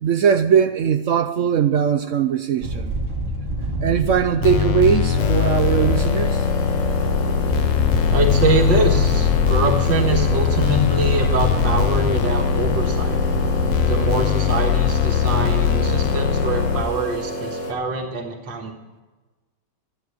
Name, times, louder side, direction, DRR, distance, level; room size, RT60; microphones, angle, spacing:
voice 1, 0.0-2.9 3.8-6.5, right 8 dB, 70° right, 0.7 m, -20 dB
sound 1, 2.6-14.1, right 1 dB, 40° right, 2.5 m, -28 dB
sound 2, 4.4-16.8, left 7 dB, 85° left, 1.6 m, -20 dB
sound 3, 5.2-17.7, left 1 dB, 45° left, 2.0 m, -31 dB
voice 2, 8.1-13.2 13.8-18.7, right 2 dB, 90° right, 2.1 m, -24 dB
13.0 x 11.5 x 7.7 m
omnidirectional pair, 1.9 m